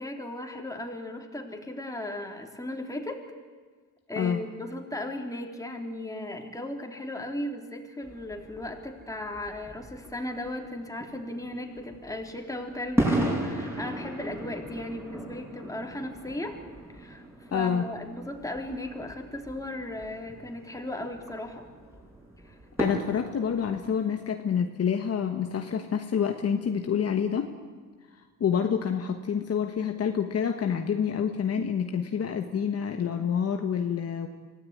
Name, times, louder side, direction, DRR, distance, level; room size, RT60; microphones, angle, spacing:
voice 1, 0.0-3.2 4.1-16.5 16.9-17.2 17.5-21.7 22.4-22.6, left 1 dB, 10° left, 2 dB, 3.5 m, -36 dB
sound 1, 8.0-23.9, right 1 dB, 5° right, 7.1 m, -36 dB
voice 2, 17.5-17.9 22.8-27.5 28.4-34.3, left 7 dB, 45° left, 5 dB, 1.4 m, -27 dB
25.0 x 17.0 x 9.8 m, 1.5 s
cardioid pair, 100°, 34 cm